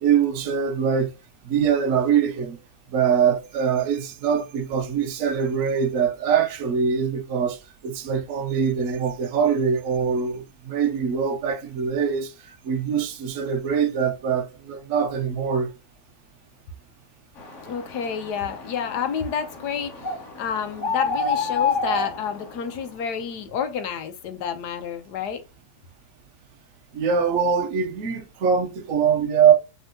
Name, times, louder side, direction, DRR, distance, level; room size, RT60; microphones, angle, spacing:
voice 1, 0.0-1.1 1.4-2.6 2.9-7.6 7.8-12.3 12.6-15.7 26.9-29.5, right 7 dB, 55° right, 1.0 m, -23 dB
sound 1, 17.4-22.9, left 4 dB, 45° left, 1.1 m, -29 dB
voice 2, 17.7-20.1 20.4-25.4, left 7 dB, 65° left, 1.2 m, -29 dB
5.4 x 3.6 x 2.8 m
omnidirectional pair, 2.1 m